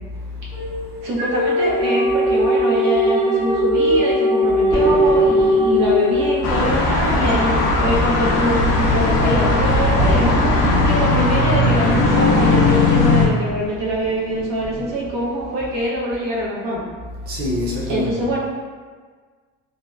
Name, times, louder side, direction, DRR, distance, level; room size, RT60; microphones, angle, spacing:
voice 1, 0.0-1.1 10.6-10.9 17.2-18.1, left 2 dB, 30° right, -6 dB, 0.6 m, -28 dB
sound 1, 0.5-6.9, equal, 50° right, 1.0 m, -19 dB
voice 2, 1.0-16.8 17.9-18.4, equal, 85° right, -6 dB, 0.9 m, -24 dB
Thunder, 4.7-15.3 15.6-15.9, equal, 10° left, 0.4 m, -30 dB
sound 2, 6.4-13.3, left 2 dB, 80° left, 0.5 m, -17 dB
2.7 x 2.2 x 2.3 m, 1.5 s
cardioid pair, 135°, 32 cm